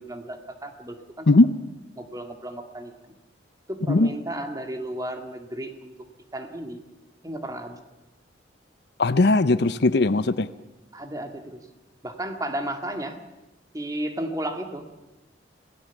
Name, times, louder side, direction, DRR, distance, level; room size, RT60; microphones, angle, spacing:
voice 1, 0.0-1.3 2.0-3.1 3.7-5.9 6.3-6.8 7.2-7.8 10.9-11.6 12.0-13.2 13.7-15.0, right 1 dB, 20° right, 5 dB, 2.0 m, -33 dB
voice 2, 9.0-10.5, left 2 dB, 55° left, 14 dB, 0.7 m, -19 dB
26.5 x 17.0 x 7.2 m, 1.0 s
head